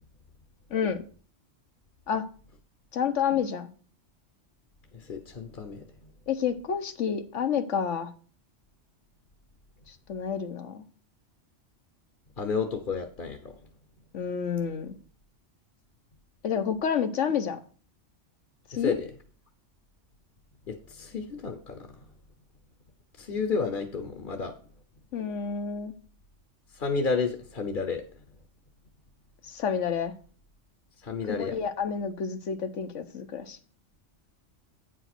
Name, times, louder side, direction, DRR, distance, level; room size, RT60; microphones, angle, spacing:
voice 1, 0.7-1.0 2.1-2.3 2.9-3.7 6.3-8.1 9.9-10.8 14.1-14.9 16.4-17.6 18.7-18.9 25.1-25.9 29.4-30.1 31.3-33.6, left 7 dB, 80° left, 10 dB, 1.3 m, -29 dB
voice 2, 4.9-5.9 12.4-13.5 18.7-19.1 20.7-22.0 23.2-24.5 26.7-28.0 31.0-31.6, left 5 dB, 50° left, 6 dB, 1.0 m, -31 dB
9.0 x 5.1 x 5.9 m, 0.41 s
omnidirectional pair, 1.2 m